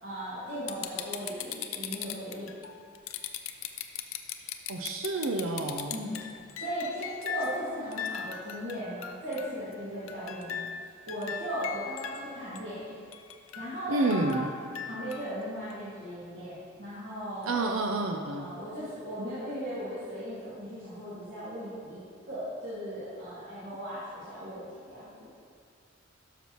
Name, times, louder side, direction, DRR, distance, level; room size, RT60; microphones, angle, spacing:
voice 1, 0.0-2.5 5.9-13.0 13.6-14.4 14.8-17.6 18.3-22.0 22.3-25.3, equal, 65° right, -12 dB, 2.0 m, -37 dB
sound 1, 0.7-7.6 7.9-9.7 10.1-12.2 12.6-12.7 13.1-15.3 15.7-15.8, left 9 dB, 85° left, 0.5 m, -38 dB
voice 2, 4.7-6.0 13.9-14.5 17.5-18.5, right 2 dB, 85° right, 3 dB, 0.6 m, -29 dB
12.5 x 5.9 x 3.0 m, 2.3 s
head